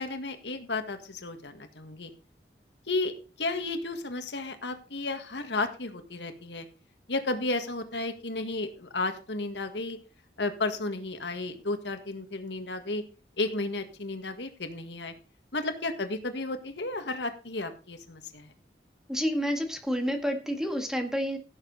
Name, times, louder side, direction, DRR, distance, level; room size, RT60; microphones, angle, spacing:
voice 1, 0.0-2.1 2.9-3.1 3.4-6.7 7.1-10.0 10.4-13.0 13.4-15.1 15.5-18.5, left 2 dB, 85° left, 7 dB, 1.8 m, -33 dB
voice 2, 19.1-21.4, equal, 5° right, 5 dB, 1.6 m, -29 dB
16.0 x 6.9 x 4.0 m, 0.35 s
head